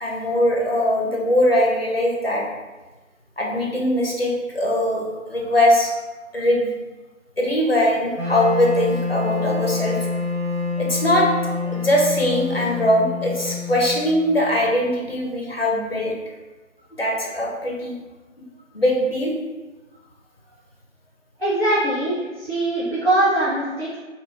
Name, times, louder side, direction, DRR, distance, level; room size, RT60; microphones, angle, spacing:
voice 1, 0.0-2.4 3.4-5.9 6.3-6.7 7.4-10.0 10.8-16.1 17.0-18.0 18.7-19.3, left 1 dB, 50° left, -1 dB, 0.5 m, -21 dB
Wind instrument woodwind instrument, 8.2-15.1, left 4 dB, 90° right, 0.7 m, -27 dB
voice 2, 21.4-24.0, right 1 dB, 45° right, -11 dB, 0.7 m, -22 dB
2.7 x 2.3 x 2.9 m, 1.2 s
figure-of-eight pair, 170°, 40 cm